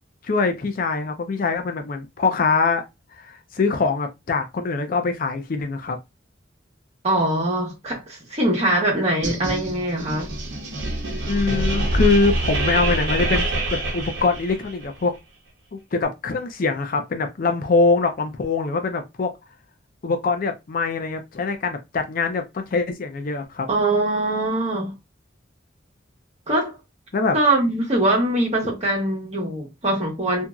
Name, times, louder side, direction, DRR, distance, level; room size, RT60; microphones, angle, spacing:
voice 1, 0.2-2.8 3.2-6.0 11.3-15.1 15.7-19.3 20.0-23.7 27.1-27.3 28.6-28.7, left 4 dB, 45° left, 0.4 m, -23 dB
voice 2, 7.0-10.3 23.7-24.9 26.5-26.7 27.3-30.5, right 1 dB, 35° right, 1.3 m, -22 dB
sound 1, 9.2-14.9, right 1 dB, 60° right, 1.0 m, -25 dB
2.8 x 2.7 x 2.3 m
head